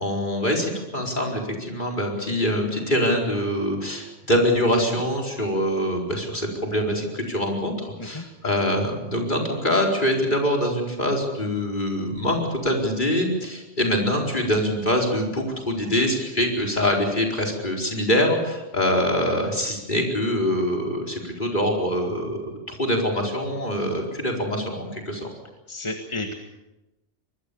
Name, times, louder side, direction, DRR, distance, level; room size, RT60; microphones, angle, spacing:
voice 1, 0.0-25.3, equal, 40° left, 1 dB, 4.7 m, -24 dB
voice 2, 25.7-26.3, left 2 dB, 25° left, 3 dB, 1.7 m, -31 dB
24.5 x 21.0 x 7.0 m, 0.97 s
omnidirectional pair, 1.2 m